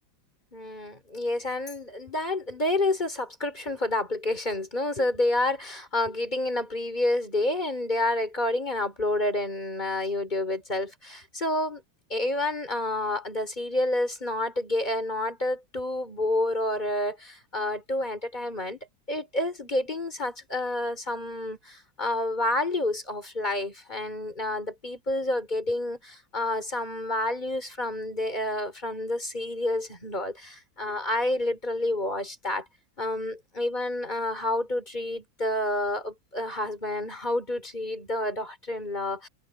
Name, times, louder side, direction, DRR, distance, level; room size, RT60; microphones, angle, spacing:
voice 1, 0.5-11.8 12.1-18.8 19.1-32.6 33.0-39.3, left 1 dB, 20° left, 4.4 m, -29 dB
omnidirectional pair, 2.1 m